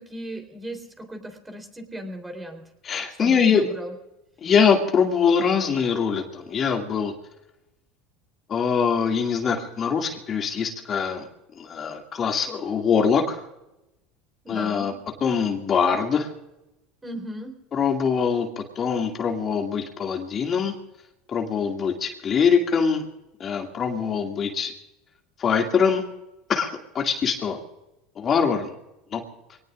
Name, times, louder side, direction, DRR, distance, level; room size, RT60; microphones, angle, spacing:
voice 1, 0.0-2.7 3.2-3.9 14.4-15.0 17.0-17.6, right 1 dB, 15° right, 5 dB, 3.8 m, -37 dB
voice 2, 2.8-3.7 4.4-7.1 8.5-11.3 11.6-13.4 14.5-14.9 15.2-16.3 17.7-20.7 21.3-23.0 23.4-24.7 25.4-26.0 26.5-27.6 28.2-28.7 29.1-29.2, left 6 dB, 35° left, 2 dB, 2.4 m, -23 dB
25.5 x 19.0 x 2.5 m, 0.94 s
supercardioid pair, 105°, 0 cm